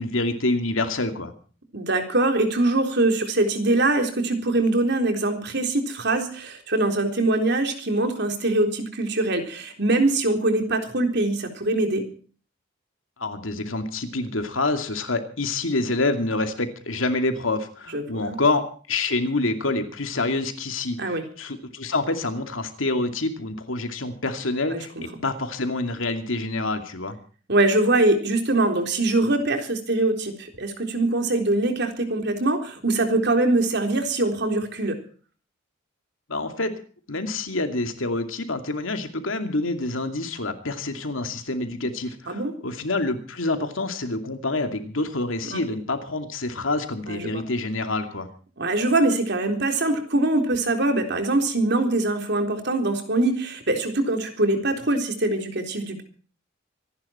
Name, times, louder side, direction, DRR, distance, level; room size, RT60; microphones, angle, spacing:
voice 1, 0.0-1.3 13.2-27.2 36.3-36.7 37.1-48.3, left 2 dB, 75° left, 7 dB, 2.5 m, -27 dB
voice 2, 1.7-12.1 17.9-18.4 21.0-21.2 24.7-24.8 27.5-35.0 42.3-42.5 45.5-45.6 47.1-47.4 48.6-56.0, right 2 dB, 55° right, 5 dB, 3.8 m, -23 dB
25.5 x 11.0 x 4.4 m, 0.41 s
head